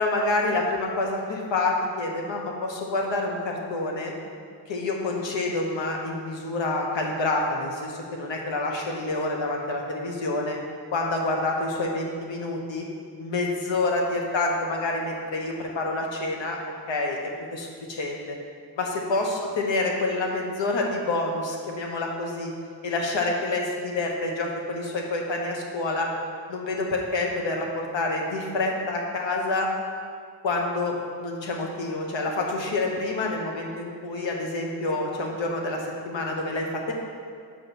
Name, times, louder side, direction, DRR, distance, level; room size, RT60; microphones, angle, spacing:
voice 1, 0.0-4.1 4.7-10.6 10.9-12.8 13.2-16.6 16.9-18.3 18.8-22.5 22.8-26.1 26.5-29.7 30.4-36.9, left 2 dB, 75° left, 0 dB, 1.3 m, -27 dB
6.7 x 5.1 x 5.9 m, 2.2 s
wide cardioid pair, 145°, 46 cm